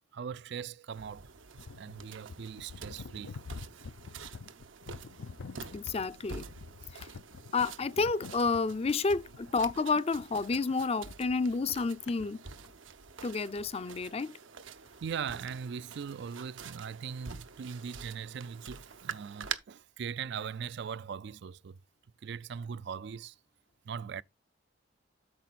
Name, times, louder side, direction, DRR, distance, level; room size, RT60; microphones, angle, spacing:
voice 1, 0.0-1.3 1.8-3.4 6.8-6.9 15.0-21.8 22.2-23.4 23.9-24.2, right 7 dB, 60° right, 0.4 m, -40 dB
sound 1, 0.9-19.5, right 6 dB, 80° right, 0.8 m, -47 dB
sound 2, 1.6-12.7, left 4 dB, 80° left, 0.5 m, -48 dB
voice 2, 5.7-6.5 6.9-7.1 7.5-12.4 13.2-14.3, left 4 dB, 30° left, 0.5 m, -30 dB
8.7 x 6.3 x 4.1 m
head